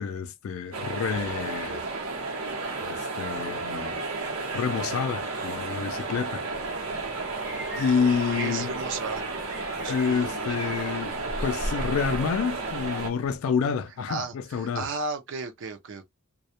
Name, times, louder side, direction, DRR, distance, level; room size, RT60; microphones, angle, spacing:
voice 1, 0.0-1.8 2.8-4.0 4.5-6.4 7.8-8.7 9.9-14.9, left 6 dB, 65° left, 0.3 m, -28 dB
sound 1, 0.7-13.1, right 3 dB, 85° right, 0.8 m, -32 dB
sound 2, 6.5-13.4, right 1 dB, 10° right, 0.6 m, -45 dB
voice 2, 8.4-9.2 9.7-10.5 14.1-16.0, right 3 dB, 60° right, 0.5 m, -34 dB
2.2 x 2.0 x 2.7 m
head